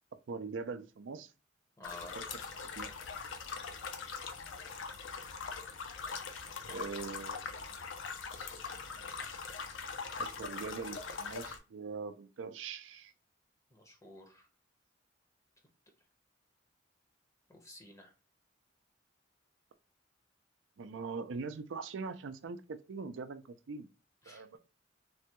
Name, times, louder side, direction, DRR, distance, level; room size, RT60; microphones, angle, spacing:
voice 1, 0.3-1.3 2.1-2.2 2.7-2.9 6.7-7.5 10.2-13.1 20.8-23.9 24.3-24.6, right 4 dB, 85° right, 0.4 m, -42 dB
sound 1, 1.8-11.6, left 5 dB, 90° left, 0.6 m, -42 dB
voice 2, 1.8-2.2 13.7-14.5 17.5-18.1 24.2-24.6, left 2 dB, 15° left, 0.6 m, -51 dB
3.4 x 2.2 x 2.8 m
head